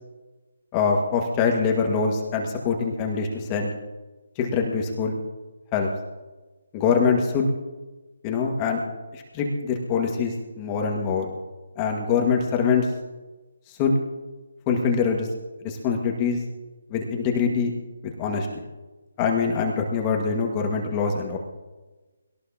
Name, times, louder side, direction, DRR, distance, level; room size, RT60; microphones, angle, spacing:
voice 1, 0.7-3.7 4.4-5.2 5.7-5.9 6.7-7.5 8.2-8.8 9.1-11.3 11.8-12.9 13.7-13.9 14.7-15.3 15.6-16.4 16.9-17.7 18.0-18.5 19.2-21.4, left 5 dB, 20° left, 1 dB, 1.8 m, -24 dB
21.5 x 18.5 x 2.9 m, 1.2 s
hypercardioid pair, 160°, 0 cm